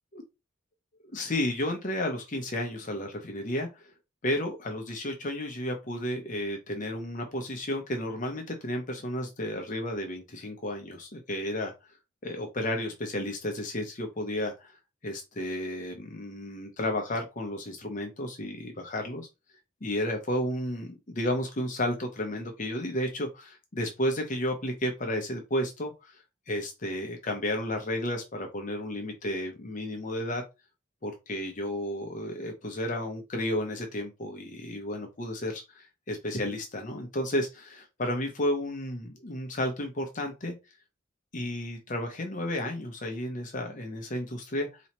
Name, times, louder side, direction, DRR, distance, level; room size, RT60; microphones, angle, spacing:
voice 1, 1.1-3.9 4.2-11.7 12.2-14.8 15.0-19.3 19.8-26.2 26.5-30.4 31.0-40.5 41.3-44.8, left 1 dB, 40° left, 3 dB, 0.8 m, -32 dB
4.1 x 3.1 x 2.9 m, 0.25 s
head